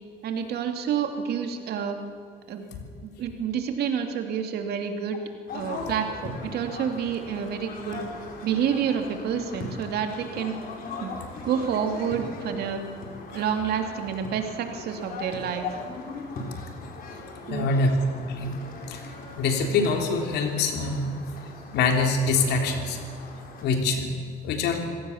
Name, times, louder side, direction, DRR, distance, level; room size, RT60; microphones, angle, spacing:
voice 1, 0.2-2.0 2.5-2.6 3.0-5.2 5.5-8.1 8.4-10.6 11.0-11.1 11.4-12.8 13.3-15.6 17.5-17.7, right 7 dB, 70° right, 5 dB, 2.7 m, -28 dB
sound 1, 5.5-23.7, left 3 dB, 60° left, 4.6 m, -40 dB
voice 2, 17.5-18.0 18.2-21.1 21.7-23.0 23.6-24.1 24.4-24.9, left 3 dB, 80° left, 4 dB, 3.4 m, -25 dB
25.5 x 17.0 x 7.2 m, 2.3 s
cardioid pair, 110°, 17 cm